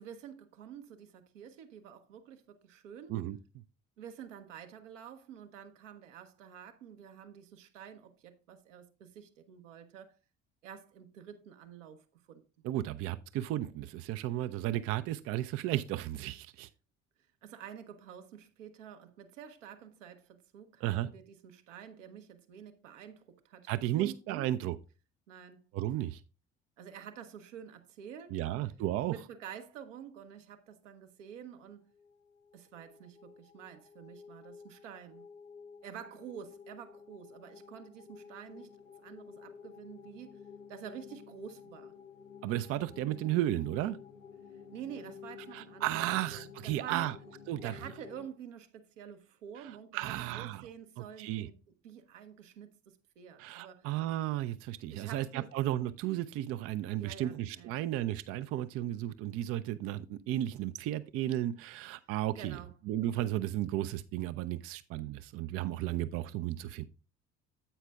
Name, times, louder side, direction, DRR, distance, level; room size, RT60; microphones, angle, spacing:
voice 1, 0.0-3.2 4.0-10.2 10.6-12.4 17.4-24.5 25.3-25.6 26.8-28.7 29.1-31.9 32.5-35.2 35.8-38.7 39.0-40.4 40.7-41.9 44.7-47.1 47.6-51.6 51.8-53.9 54.9-55.5 57.0-57.8 62.3-62.7, right 8 dB, 70° right, 0.9 m, -49 dB
voice 2, 12.6-16.7 20.8-21.1 23.7-24.8 25.7-26.2 28.3-29.1 42.4-44.0 45.5-47.1 47.5-47.7 49.6-50.7 51.0-51.5 53.4-62.6 62.9-66.9, right 14 dB, 40° right, 0.4 m, -34 dB
sound 1, 31.9-48.3, left 6 dB, 85° left, 0.7 m, -52 dB
9.8 x 8.1 x 2.3 m
figure-of-eight pair, 55°, 38 cm